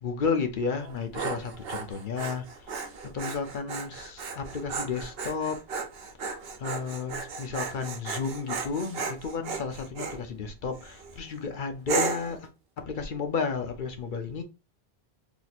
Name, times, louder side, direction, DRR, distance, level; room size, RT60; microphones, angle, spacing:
voice 1, 0.0-2.7 3.1-5.6 6.6-12.5 12.8-14.4, left 5 dB, 55° left, 0.7 m, -32 dB
Dog, 0.8-10.2 10.8-11.2 11.9-12.4, right 4 dB, 65° right, 0.9 m, -35 dB
2.9 x 2.5 x 4.1 m
omnidirectional pair, 1.1 m